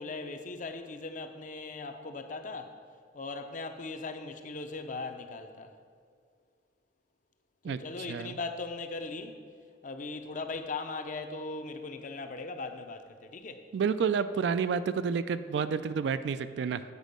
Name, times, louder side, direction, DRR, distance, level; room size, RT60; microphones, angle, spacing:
voice 1, 0.0-2.7 3.1-5.7 7.7-9.4 9.8-13.7, left 3 dB, 45° left, 7 dB, 0.5 m, -39 dB
voice 2, 13.7-16.8, right 6 dB, 65° right, 13 dB, 0.3 m, -29 dB
8.2 x 5.0 x 5.2 m, 2.1 s
head